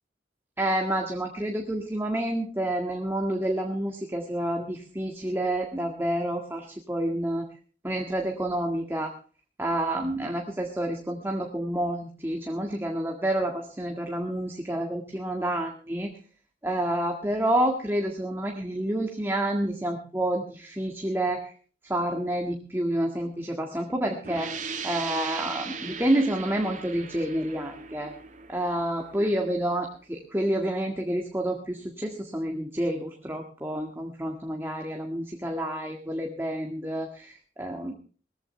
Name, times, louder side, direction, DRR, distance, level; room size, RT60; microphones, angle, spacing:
voice 1, 0.6-7.5 7.8-9.1 9.6-16.1 16.6-21.5 21.8-28.1 28.5-37.3 37.6-37.9, right 1 dB, 15° right, 2 dB, 1.8 m, -29 dB
sound 1, 24.2-29.7, right 5 dB, 45° right, 2.5 m, -38 dB
20.0 x 15.0 x 3.3 m, 0.39 s
head